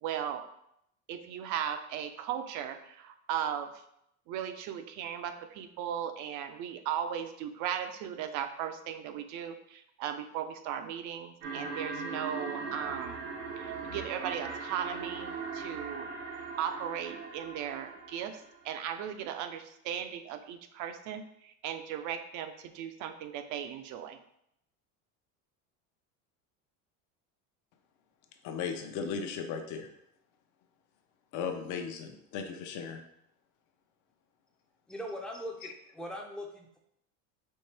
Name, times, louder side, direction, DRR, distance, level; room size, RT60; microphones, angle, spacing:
voice 1, 0.0-0.4 1.1-3.7 4.3-13.2 13.6-16.1 16.6-24.2, right 9 dB, 55° right, 8 dB, 0.5 m, -37 dB
sound 1, 11.4-18.6, right 4 dB, 90° right, 1.0 m, -40 dB
voice 2, 28.4-29.9 31.3-33.0, left 6 dB, 55° left, 6 dB, 0.7 m, -36 dB
voice 3, 34.9-36.8, equal, ahead, 0 dB, 0.5 m, -41 dB
4.5 x 3.0 x 3.3 m, 0.76 s
cardioid pair, 130°, 36 cm